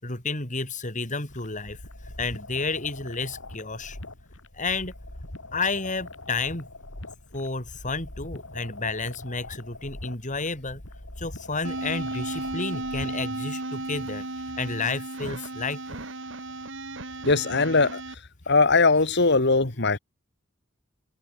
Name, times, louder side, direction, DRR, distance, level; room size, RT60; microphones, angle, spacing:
voice 1, 0.0-4.0 4.5-4.9 5.5-6.7 7.3-10.8 11.2-16.0, left 3 dB, 40° left, 5.7 m, -31 dB
sound 1, 1.3-13.3, left 2 dB, 80° left, 4.0 m, -43 dB
sound 2, 11.6-18.1, right 2 dB, 65° right, 7.4 m, -34 dB
voice 2, 17.2-18.0 18.5-20.0, left 3 dB, 60° left, 2.2 m, -20 dB
head